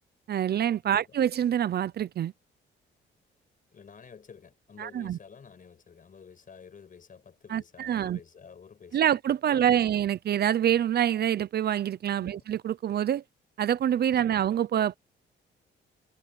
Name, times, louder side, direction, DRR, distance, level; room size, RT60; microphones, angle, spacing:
voice 1, 0.3-2.3 4.8-5.2 7.5-8.2 8.9-13.2 13.6-15.0, right 10 dB, 55° right, 0.6 m, -26 dB
voice 2, 0.9-1.2 3.7-9.0 9.5-9.9 12.2-12.4 14.1-14.4, left 6 dB, 45° left, 6.2 m, -51 dB
cardioid pair, 90°, 20 cm